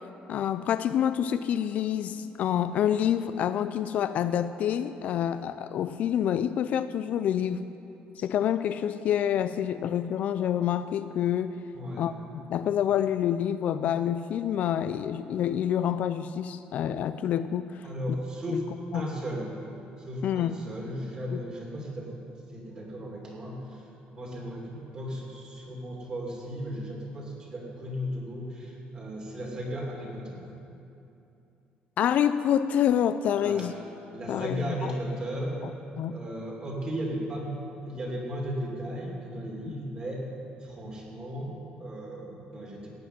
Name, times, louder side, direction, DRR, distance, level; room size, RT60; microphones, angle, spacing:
voice 1, 0.3-7.7 8.2-11.6 12.0-17.9 18.5-18.6 18.9-19.1 20.2-20.6 21.3-21.4 32.0-33.7 34.3-34.9 35.6-35.7 36.0-36.2, left 9 dB, 50° left, 12 dB, 0.3 m, -27 dB
voice 2, 11.7-12.1 17.8-19.5 20.0-22.1 22.5-23.9 24.1-30.4 33.4-33.7 34.1-35.6 36.1-37.6 37.9-40.3 40.6-42.9, equal, 25° right, -2 dB, 2.6 m, -35 dB
16.5 x 5.9 x 9.4 m, 2.8 s
cardioid pair, 170°, 3 cm